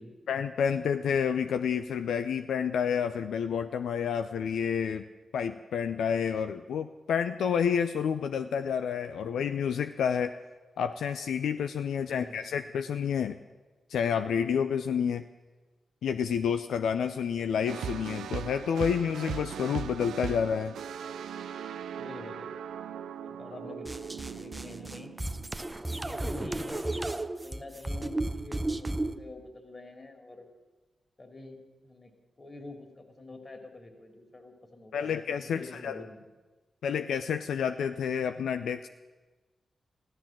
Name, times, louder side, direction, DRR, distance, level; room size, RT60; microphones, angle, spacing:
voice 1, 0.3-5.0 5.3-10.3 10.8-13.3 13.9-15.2 16.0-20.7 34.9-36.0 36.8-38.9, left 7 dB, 85° left, 9 dB, 0.4 m, -29 dB
voice 2, 12.1-12.4 22.0-22.6 23.2-25.1 25.9-30.5 31.2-36.2, left 2 dB, 40° left, 5 dB, 3.2 m, -47 dB
sound 1, 17.7-25.8, right 8 dB, 85° right, 0.5 m, -39 dB
sound 2, 23.8-29.2, right 2 dB, 20° right, 0.8 m, -34 dB
14.5 x 12.0 x 7.4 m, 1.2 s
supercardioid pair, 45°, 0 cm